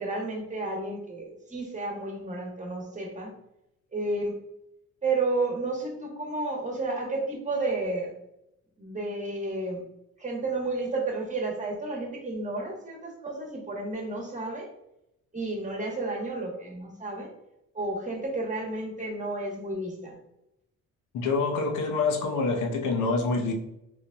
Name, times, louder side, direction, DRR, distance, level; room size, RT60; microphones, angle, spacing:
voice 1, 0.0-3.3 3.9-4.3 5.0-8.1 8.8-9.9 10.2-14.7 15.3-17.3 17.7-20.2, right 2 dB, 25° right, 0 dB, 1.2 m, -31 dB
voice 2, 21.1-23.5, left 3 dB, 85° left, 2 dB, 0.8 m, -26 dB
4.0 x 3.4 x 2.3 m, 0.82 s
cardioid pair, 90°, 30 cm